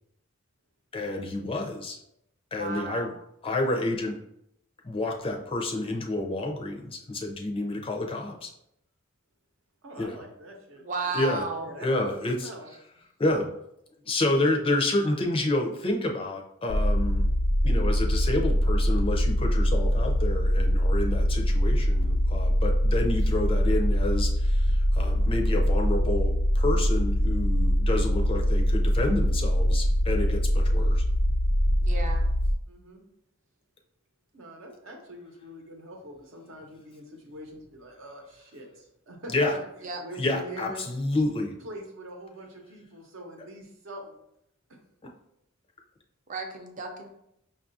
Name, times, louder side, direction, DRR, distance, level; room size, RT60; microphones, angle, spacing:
voice 1, 0.9-2.0 2.5-3.1 3.4-4.2 4.8-8.5 10.0-10.1 11.1-11.4 11.8-12.5 13.2-13.4 14.0-17.2 17.6-31.0 39.3-39.5 40.2-41.5, left 2 dB, 25° left, 2 dB, 0.4 m, -29 dB
voice 2, 2.6-3.1 10.8-11.7 31.8-32.3 39.8-40.0 46.3-47.1, right 3 dB, 40° right, 3 dB, 0.5 m, -33 dB
voice 3, 9.8-11.3 11.6-12.1 12.4-12.8 13.3-13.4 32.7-33.0 34.3-40.9 41.6-44.2 44.7-44.8, right 1 dB, 75° right, 2 dB, 0.8 m, -44 dB
sound 1, 16.7-32.5, equal, 85° left, 0.4 m, -23 dB
5.3 x 2.3 x 2.6 m, 0.78 s
head